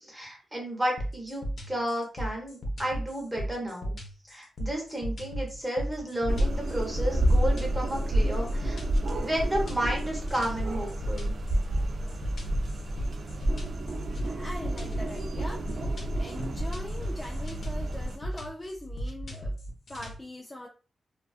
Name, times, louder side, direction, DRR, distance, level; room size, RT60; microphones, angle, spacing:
voice 1, 0.0-3.9 4.3-8.8 9.2-11.3, right 1 dB, 5° right, -2 dB, 1.1 m, -32 dB
sound 1, 1.0-20.2, right 1 dB, 55° left, 0.7 m, -36 dB
sound 2, 6.3-18.2, right 1 dB, 60° right, 0.4 m, -30 dB
voice 2, 14.3-15.6 16.2-19.5 19.9-20.7, left 1 dB, 15° left, -1 dB, 0.4 m, -41 dB
2.3 x 2.3 x 2.4 m, 0.36 s
cardioid pair, 95°, 0 cm